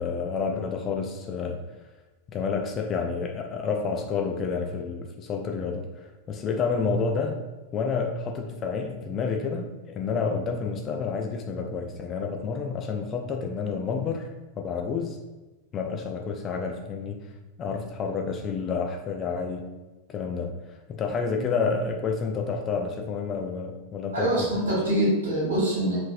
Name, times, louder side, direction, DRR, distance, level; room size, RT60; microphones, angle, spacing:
voice 1, 0.0-1.6 2.3-7.4 7.7-14.2 14.6-15.2 15.7-17.3 17.6-19.7 20.1-20.6 20.9-24.5, left 5 dB, 30° left, 3 dB, 0.4 m, -29 dB
voice 2, 24.1-26.0, right 1 dB, 70° right, -6 dB, 1.5 m, -24 dB
3.8 x 2.5 x 2.5 m, 1.1 s
figure-of-eight pair, 90°, 0 cm